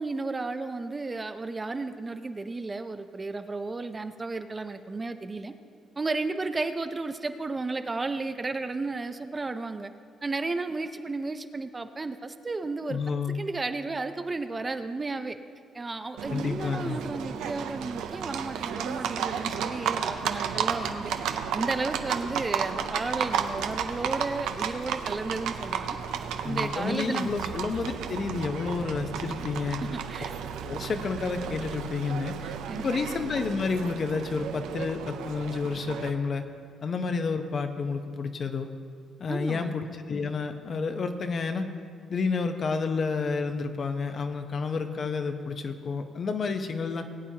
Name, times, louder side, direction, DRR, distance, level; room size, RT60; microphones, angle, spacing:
voice 1, 0.0-5.5 6.0-9.9 10.2-13.0 13.3-15.4 15.7-21.1 21.5-26.0 26.4-27.3 29.8-30.4 32.7-32.9 39.3-39.7, right 3 dB, 25° right, 9 dB, 0.5 m, -33 dB
voice 2, 12.9-13.4 16.3-17.0 26.4-29.8 30.6-36.4 36.8-38.7 39.2-41.7 42.1-47.1, left 4 dB, 50° left, 7 dB, 0.8 m, -30 dB
Livestock farm animals working animals, 16.2-36.1, right 8 dB, 90° right, 0.6 m, -33 dB
19.5 x 8.7 x 2.8 m, 2.1 s
cardioid pair, 90°, 0 cm